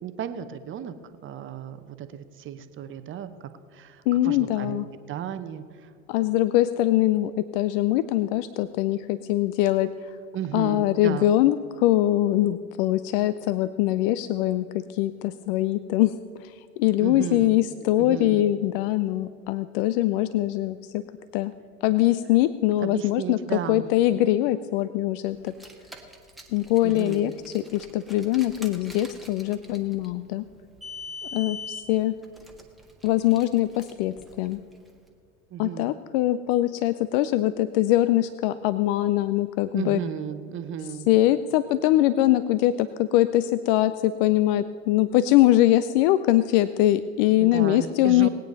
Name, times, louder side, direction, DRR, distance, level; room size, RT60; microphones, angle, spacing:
voice 1, 0.0-0.9 1.2-5.6 10.3-11.3 17.0-17.5 18.0-18.5 22.8-23.9 26.8-27.3 35.5-35.9 39.7-41.1 47.4-48.3, right 9 dB, 30° right, 10 dB, 0.9 m, -34 dB
voice 2, 4.1-4.9 6.1-9.9 10.5-21.0 21.3-21.5 21.8-25.5 26.5-30.4 31.3-32.1 33.0-34.6 35.6-40.0 41.1-48.3, left 14 dB, 40° left, 14 dB, 0.5 m, -23 dB
Car, 25.4-34.9, left 3 dB, ahead, 1.5 m, -43 dB
20.0 x 9.1 x 5.3 m, 2.4 s
hypercardioid pair, 90°, 43 cm